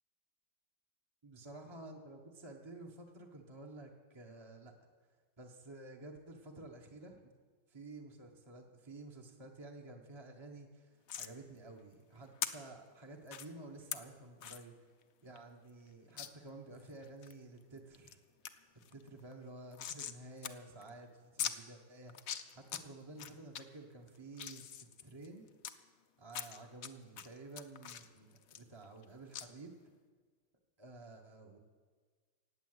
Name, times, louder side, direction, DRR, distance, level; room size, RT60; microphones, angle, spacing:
voice 1, 1.2-4.7 5.4-7.3 7.7-14.7 15.2-18.2 18.9-25.5 26.2-29.7 30.8-31.6, right 2 dB, 20° right, 1 dB, 0.9 m, -52 dB
sound 1, 11.1-11.3 12.4-12.5 13.3-13.5 13.9-14.0 14.4-14.6 15.0-15.1 15.4-15.5 16.2-16.3 16.8-17.3 17.8-18.1 18.4-18.5 18.8-20.2 20.4-20.5 20.8-20.9 21.4-21.5 22.1-22.8 23.2-23.6 24.1-25.7 26.3-26.9 27.2-29.0 29.3-29.5, left 9 dB, 60° left, 1.0 m, -41 dB
18.0 x 8.4 x 8.0 m, 1.5 s
omnidirectional pair, 2.0 m